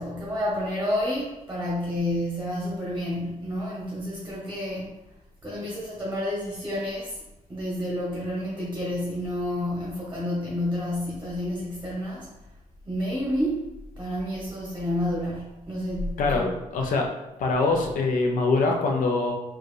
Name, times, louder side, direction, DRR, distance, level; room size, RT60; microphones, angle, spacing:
voice 1, 0.0-4.9 5.4-7.2 7.5-12.3 12.8-16.5, left 1 dB, 15° right, -5 dB, 0.9 m, -30 dB
voice 2, 16.7-17.1 17.4-19.4, left 3 dB, 80° left, 2 dB, 0.7 m, -23 dB
4.6 x 2.4 x 3.2 m, 0.95 s
wide cardioid pair, 155°, 14 cm